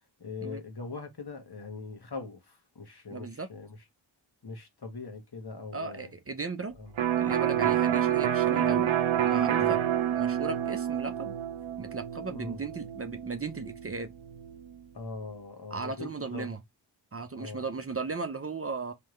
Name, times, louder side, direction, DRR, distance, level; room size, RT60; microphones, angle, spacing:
voice 1, 0.2-3.8 4.4-6.1 6.7-6.9 7.5-7.8 8.6-8.8 9.5-9.8 12.3-12.6 14.9-16.5 17.4-17.7, left 4 dB, 55° left, 1.6 m, -41 dB
voice 2, 3.1-3.5 5.7-6.7 7.2-8.9 9.2-9.8 10.1-11.3 11.8-14.1 15.7-16.6 17.1-18.9, right 4 dB, 30° right, 0.6 m, -36 dB
Electric guitar, 7.0-14.6, right 10 dB, 80° right, 0.8 m, -28 dB
3.6 x 3.3 x 3.1 m
cardioid pair, 55°, 46 cm